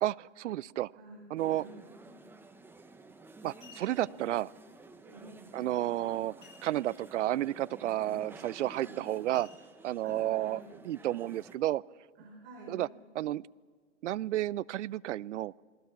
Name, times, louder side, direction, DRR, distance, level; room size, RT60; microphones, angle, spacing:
voice 1, 0.0-0.9 1.3-1.6 3.4-4.5 5.5-6.3 6.6-9.5 9.8-11.8 12.7-12.9 13.2-13.5 14.0-15.5, right 14 dB, 70° right, 24 dB, 0.5 m, -31 dB
voice 2, 0.9-1.8 3.9-4.2 5.0-5.5 8.0-8.3 8.7-9.0 10.0-10.6 12.2-12.8, right 2 dB, 30° right, 2 dB, 3.9 m, -50 dB
sound 1, 1.4-11.6, right 3 dB, 5° right, 0.9 m, -53 dB
sound 2, 2.7-3.0 3.4-4.2 6.4-7.1 7.4-7.5 8.0-8.2 9.3-10.1 10.7-10.8, left 6 dB, 40° left, 7.6 m, -56 dB
28.0 x 20.5 x 6.0 m, 1.6 s
hypercardioid pair, 135°, 37 cm